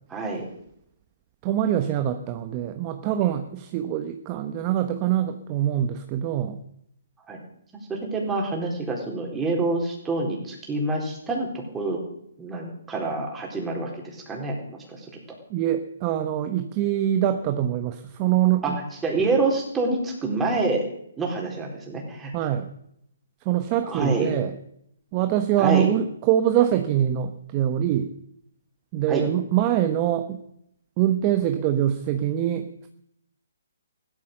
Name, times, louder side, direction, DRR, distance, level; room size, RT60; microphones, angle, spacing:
voice 1, 0.1-0.5 3.2-3.3 7.3-7.4 7.9-12.0 12.4-15.1 18.6-18.7 19.0-20.8 21.2-22.3 23.8-24.4 25.6-25.9 29.1-29.3, right 3 dB, 10° right, 0 dB, 4.1 m, -27 dB
voice 2, 1.4-6.6 15.5-18.8 22.3-22.7 23.4-24.5 25.1-28.1 28.9-30.4 31.0-32.9, right 11 dB, 30° right, 8 dB, 1.1 m, -24 dB
15.5 x 13.0 x 6.7 m, 0.74 s
hypercardioid pair, 150°, 0 cm